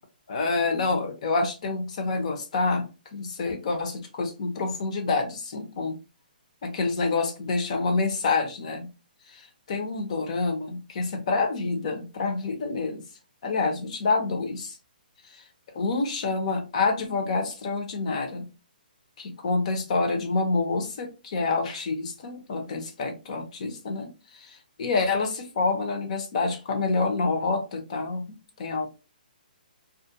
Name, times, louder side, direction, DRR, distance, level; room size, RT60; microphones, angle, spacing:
voice 1, 0.3-6.0 6.6-8.9 9.3-13.0 13.4-14.8 15.3-15.4 15.7-18.5 19.2-28.9, left 3 dB, 45° left, 0.7 m, -27 dB
2.4 x 2.2 x 2.8 m
hypercardioid pair, 165°, 5 cm